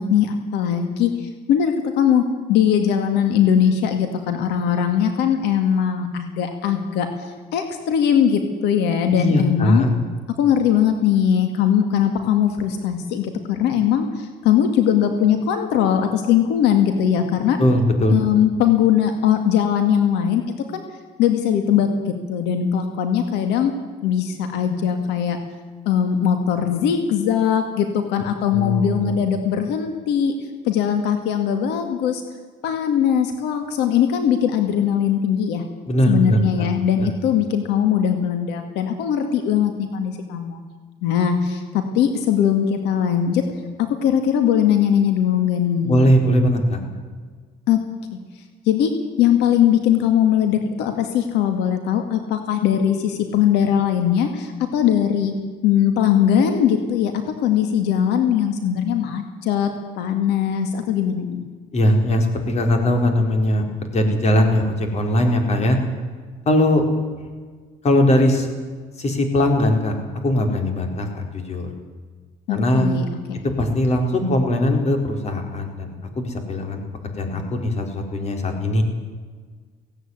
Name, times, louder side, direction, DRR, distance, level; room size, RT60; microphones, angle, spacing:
voice 1, 0.0-2.2 2.5-9.8 10.4-17.6 18.1-20.4 20.7-20.8 21.2-21.9 22.3-23.7 24.0-25.4 25.9-30.3 30.6-32.2 32.6-35.6 36.1-40.6 41.0-43.4 43.8-46.1 47.7-47.8 48.7-48.9 49.2-55.3 55.6-57.1 57.4-59.7 60.0-61.5 72.5-73.4, left 9 dB, 90° left, 6 dB, 2.2 m, -20 dB
voice 2, 9.1-9.9 17.6-18.1 28.5-29.2 35.9-36.7 37.0-37.1 45.8-46.8 61.7-63.6 63.9-65.8 66.5-66.8 67.8-68.5 69.0-69.9 70.2-71.7 72.5-72.9 73.4-75.9 76.2-76.8 77.2-78.8, left 1 dB, 40° left, 4 dB, 4.5 m, -20 dB
17.0 x 17.0 x 9.7 m, 1.5 s
cardioid pair, 110°, 17 cm